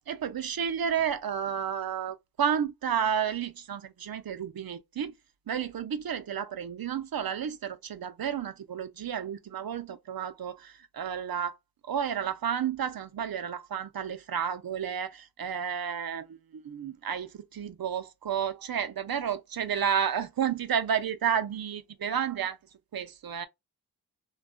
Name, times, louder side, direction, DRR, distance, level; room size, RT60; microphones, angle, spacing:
voice 1, 0.0-5.1 5.5-11.6 11.9-22.6 22.9-23.5, right 8 dB, 65° right, 0.5 m, -31 dB
2.6 x 2.2 x 2.4 m
cardioid pair, 45°, 40 cm